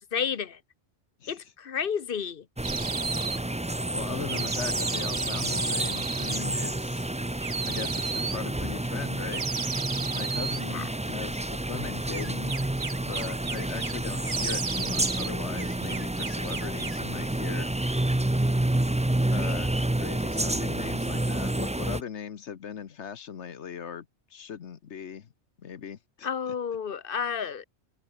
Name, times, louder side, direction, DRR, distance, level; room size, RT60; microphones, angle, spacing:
voice 1, 0.1-0.6 1.3-2.4 10.7-10.8 26.2-27.6, left 7 dB, 55° left, 1.0 m, -31 dB
sound 1, 2.6-22.0, right 1 dB, 10° right, 0.5 m, -29 dB
sound 2, 2.6-3.4 4.3-6.4 7.4-8.4 9.3-10.6 12.1-14.0 14.3-15.3 15.6-17.0, right 5 dB, 45° right, 1.5 m, -33 dB
voice 2, 3.9-7.0 7.6-9.4 10.1-12.6 13.0-17.7 19.3-25.3 25.6-26.5, left 7 dB, 75° left, 1.3 m, -39 dB
omnidirectional pair, 1.2 m